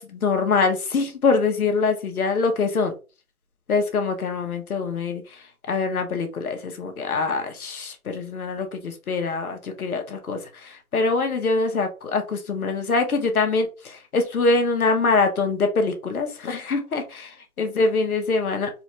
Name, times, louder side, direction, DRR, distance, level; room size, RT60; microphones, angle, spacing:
voice 1, 0.0-2.9 3.7-18.7, left 4 dB, 70° left, 5 dB, 1.2 m, -24 dB
4.1 x 2.5 x 3.1 m, 0.32 s
hypercardioid pair, 160°, 45 cm